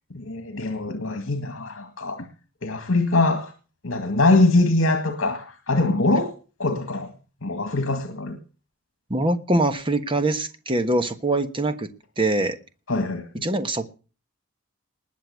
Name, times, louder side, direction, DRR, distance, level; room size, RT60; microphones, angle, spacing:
voice 1, 0.1-2.3 2.6-3.5 3.8-6.3 6.6-7.1 7.4-8.4 12.9-13.4, left 2 dB, 70° left, 2.1 m, -23 dB
voice 2, 9.1-11.9 12.2-12.6 13.4-13.9, right 2 dB, 25° right, 1.3 m, -23 dB
20.0 x 6.9 x 8.3 m
head